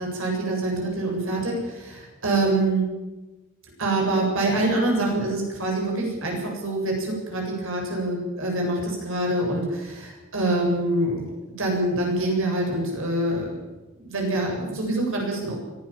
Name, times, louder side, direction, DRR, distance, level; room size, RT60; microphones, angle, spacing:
voice 1, 0.0-2.9 3.8-11.3 11.6-13.6 14.0-15.6, right 2 dB, 65° right, 0 dB, 8.0 m, -25 dB
23.5 x 16.5 x 7.5 m, 1.1 s
head